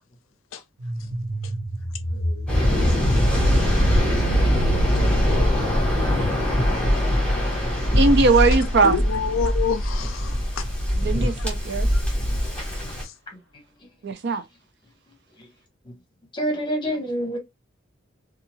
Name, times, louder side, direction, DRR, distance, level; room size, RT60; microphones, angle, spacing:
sound 1, 0.8-9.5, right 1 dB, 85° right, 0.9 m, -28 dB
voice 1, 2.1-3.1 3.7-5.0 5.3-5.6 8.5-10.7 11.3-11.5 11.9-12.0 13.0-13.1, left 6 dB, 85° left, 0.4 m, -31 dB
Waves surf, 2.5-13.0, equal, 5° left, 1.5 m, -22 dB
voice 2, 7.9-8.9 11.0-11.9 14.0-14.4, right 3 dB, 60° right, 0.5 m, -19 dB
voice 3, 16.3-17.4, equal, 25° left, 1.0 m, -27 dB
2.7 x 2.4 x 2.8 m
head